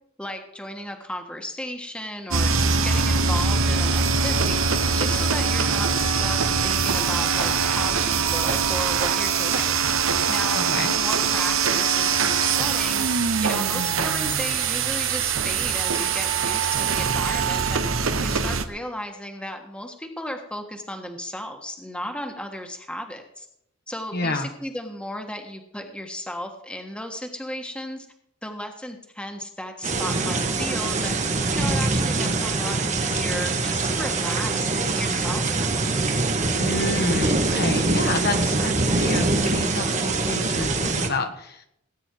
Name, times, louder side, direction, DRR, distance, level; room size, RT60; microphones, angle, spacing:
voice 1, 0.2-2.5 2.8-9.7 10.3-17.8 18.2-23.5 23.9-28.1 28.4-31.2 31.5-35.5, left 1 dB, 5° left, 4 dB, 1.4 m, -35 dB
sound 1, 2.3-18.6, right 5 dB, 90° right, 1.1 m, -23 dB
voice 2, 10.5-10.9 24.1-24.5 36.6-41.7, left 2 dB, 50° left, 5 dB, 1.4 m, -29 dB
sound 2, 29.8-41.1, right 3 dB, 35° right, 1.3 m, -24 dB
18.5 x 9.0 x 4.6 m, 0.76 s
head